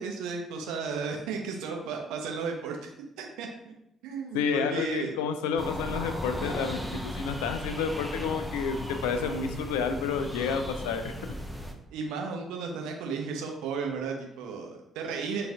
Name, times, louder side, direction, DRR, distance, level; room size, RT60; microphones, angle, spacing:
voice 1, 0.0-2.9 3.2-3.5 4.0-5.2 11.9-15.5, right 5 dB, 65° right, 2 dB, 0.6 m, -34 dB
voice 2, 4.3-11.1, left 6 dB, 70° left, 8 dB, 0.3 m, -30 dB
sound 1, 5.6-11.7, equal, ahead, 0.6 m, -37 dB
4.1 x 2.5 x 3.6 m, 0.80 s
figure-of-eight pair, 45°, 0 cm